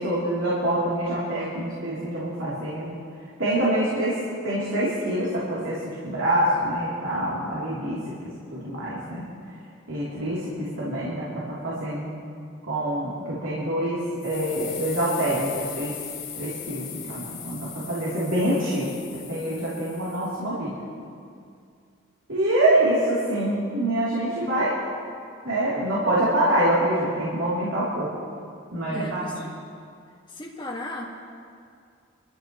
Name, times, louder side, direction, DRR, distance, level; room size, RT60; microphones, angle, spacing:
voice 1, 0.0-3.0 3.4-9.3 9.9-12.1 12.6-16.0 16.4-20.9 22.3-24.7 25.4-28.1 28.7-29.2, right 1 dB, 80° right, -9 dB, 3.2 m, -26 dB
sound 1, 14.2-20.4, left 8 dB, 60° left, 3.2 m, -39 dB
voice 2, 28.9-29.5 30.3-31.1, left 1 dB, 25° left, -1 dB, 1.8 m, -36 dB
25.0 x 14.0 x 3.1 m, 2.3 s
head